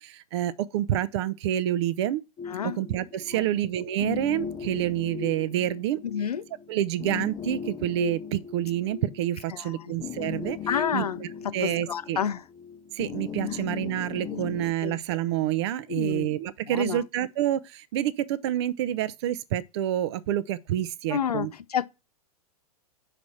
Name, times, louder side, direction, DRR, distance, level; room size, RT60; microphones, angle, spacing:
voice 1, 0.0-2.2 2.6-6.0 6.7-10.6 10.9-12.2 12.9-21.5, right 12 dB, 45° right, 0.5 m, -28 dB
sound 1, 2.4-14.7, left 7 dB, 20° left, 0.6 m, -38 dB
voice 2, 2.5-2.8 3.3-3.5 6.0-6.4 9.5-9.9 10.7-12.4 13.5-13.6 14.3-14.4 14.8-15.0 15.9-16.3 16.7-17.0 21.1-21.8, left 8 dB, 75° left, 0.6 m, -30 dB
6.0 x 5.0 x 4.3 m
figure-of-eight pair, 105°, 20 cm